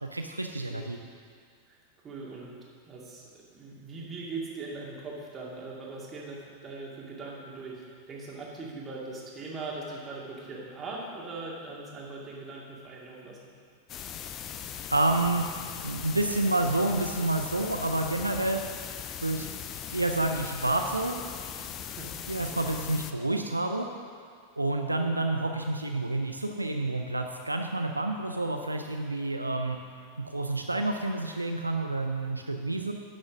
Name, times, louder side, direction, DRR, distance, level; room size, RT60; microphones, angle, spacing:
voice 1, 0.0-1.0 14.9-15.5 15.8-18.6 19.2-19.5 19.9-21.2 22.3-23.9 24.6-29.8 30.2-32.9, right 2 dB, 85° right, 4 dB, 0.5 m, -29 dB
voice 2, 2.0-2.5 2.9-13.4 21.8-22.2 22.5-22.6, right 3 dB, 25° right, -3 dB, 2.3 m, -40 dB
sound 1, 13.9-23.1, left 9 dB, 30° left, 0.5 m, -39 dB
11.0 x 6.3 x 6.2 m, 2.1 s
figure-of-eight pair, 90°, 0 cm